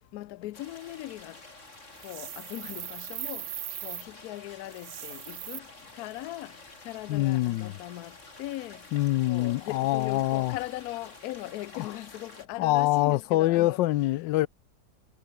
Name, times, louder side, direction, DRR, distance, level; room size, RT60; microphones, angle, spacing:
voice 1, 0.1-1.4 2.0-3.4 3.8-5.7 6.0-6.5 6.8-8.1 8.4-8.8 9.3-13.8, left 16 dB, 70° left, 1.0 m, -39 dB
sound 1, 0.5-12.5, left 2 dB, 40° left, 4.7 m, -50 dB
sound 2, 2.0-4.1 4.7-5.6, right 12 dB, 70° right, 1.3 m, -39 dB
voice 2, 7.1-7.7 8.9-10.6 11.7-11.9 12.6-14.5, left 16 dB, 85° left, 1.3 m, -25 dB
omnidirectional pair, 1.9 m